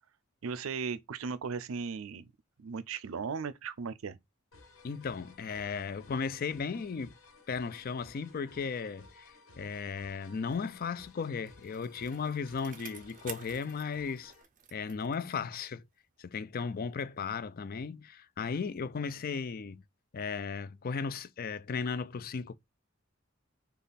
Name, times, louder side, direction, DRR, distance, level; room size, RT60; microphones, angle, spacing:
voice 1, 0.4-2.2 2.6-4.2, right 5 dB, 80° right, 0.5 m, -37 dB
sound 1, 4.5-14.4, left 3 dB, 75° left, 1.5 m, -57 dB
voice 2, 4.8-7.2 7.5-14.3 14.7-15.8 16.2-19.8 20.1-22.5, left 5 dB, 45° left, 0.4 m, -36 dB
Bicycle, 10.9-15.8 16.2-16.3, right 8 dB, 40° right, 0.6 m, -51 dB
5.3 x 2.4 x 4.0 m
head